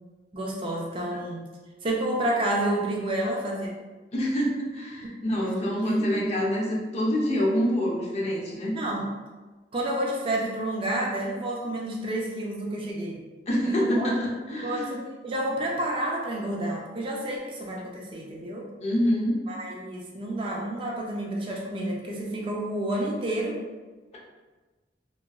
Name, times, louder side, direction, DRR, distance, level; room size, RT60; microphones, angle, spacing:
voice 1, 0.3-1.4 1.8-3.7 5.8-6.3 8.7-9.1 9.7-13.2 13.6-14.1 14.6-18.7 19.5-23.6, right 1 dB, 30° right, -2 dB, 0.3 m, -30 dB
voice 2, 4.1-8.7 13.5-15.0 18.8-19.3, equal, 35° left, -3 dB, 0.5 m, -26 dB
2.8 x 2.3 x 2.2 m, 1.3 s
head